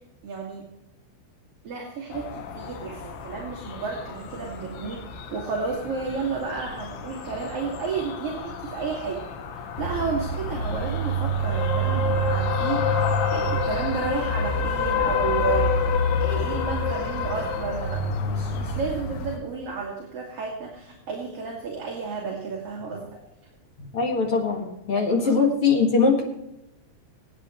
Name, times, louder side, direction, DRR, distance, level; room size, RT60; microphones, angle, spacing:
voice 1, 0.2-0.7 1.6-9.2 9.5-15.8 16.2-23.2 25.2-25.4, right 5 dB, 40° right, -3 dB, 2.5 m, -32 dB
sound 1, 2.1-18.8, left 6 dB, 70° left, 3.1 m, -37 dB
sound 2, 9.8-19.4, left 2 dB, 90° left, 3.7 m, -25 dB
voice 2, 23.9-26.2, left 4 dB, 45° left, 0 dB, 2.0 m, -21 dB
25.0 x 9.4 x 3.2 m, 0.88 s
omnidirectional pair, 5.2 m